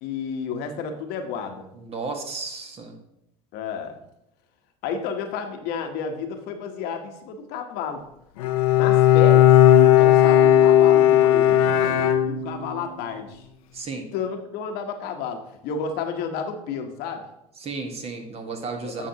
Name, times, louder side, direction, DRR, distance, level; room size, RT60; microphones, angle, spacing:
voice 1, 0.0-1.7 3.5-4.0 4.8-8.1 8.7-9.5 9.8-11.6 12.2-13.4 14.1-17.2 18.8-19.1, left 6 dB, 60° left, 6 dB, 1.1 m, -31 dB
voice 2, 1.7-2.9 13.7-14.1 17.6-19.1, right 4 dB, 35° right, 4 dB, 1.5 m, -33 dB
Bowed string instrument, 8.4-12.8, left 11 dB, 80° left, 0.8 m, -16 dB
9.4 x 6.2 x 2.9 m, 0.82 s
hypercardioid pair, 90°, 18 cm